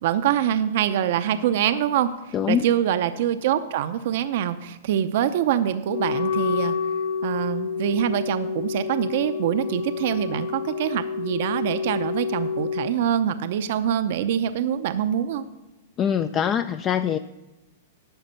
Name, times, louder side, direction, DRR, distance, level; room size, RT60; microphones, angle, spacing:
voice 1, 0.0-6.8 7.2-15.4, right 10 dB, 60° right, 11 dB, 0.6 m, -24 dB
voice 2, 2.3-2.6 16.0-17.2, left 8 dB, 25° left, 11 dB, 0.3 m, -23 dB
Wind instrument woodwind instrument, 5.9-12.9, left 6 dB, 80° left, 1.1 m, -28 dB
11.0 x 7.0 x 5.6 m, 1.1 s
hypercardioid pair, 140°, 0 cm